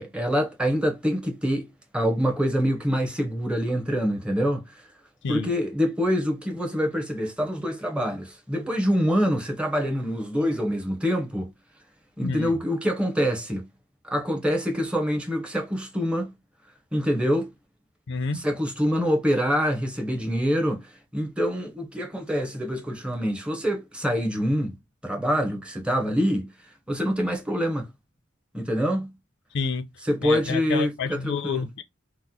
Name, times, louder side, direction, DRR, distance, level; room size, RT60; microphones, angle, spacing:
voice 1, 0.0-4.9 5.3-11.5 12.2-13.7 14.0-16.3 16.9-17.5 18.3-24.7 25.0-26.5 26.9-27.9 28.5-29.1 30.1-31.6, equal, 5° right, 0.7 m, -25 dB
voice 2, 12.2-12.5 18.1-18.4 29.5-29.9 30.2-31.8, left 5 dB, 60° left, 0.5 m, -29 dB
2.9 x 2.0 x 3.7 m
head